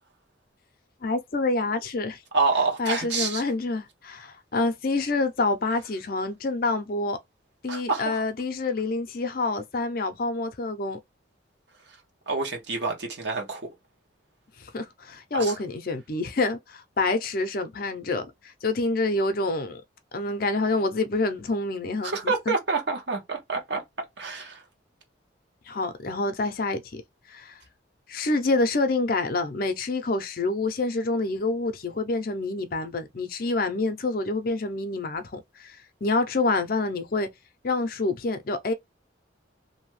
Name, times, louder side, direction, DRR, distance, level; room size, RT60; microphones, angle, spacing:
voice 1, 1.0-2.2 2.8-7.2 7.6-11.0 14.6-19.8 20.1-22.5 25.7-27.0 27.3-27.6 28.1-37.3 37.6-38.7, left 3 dB, 50° left, 0.5 m, -27 dB
voice 2, 2.3-3.4 7.7-8.2 12.3-13.6 15.3-15.5 22.0-23.8 24.2-24.6, right 4 dB, 65° right, 1.0 m, -27 dB
2.6 x 2.2 x 3.1 m
head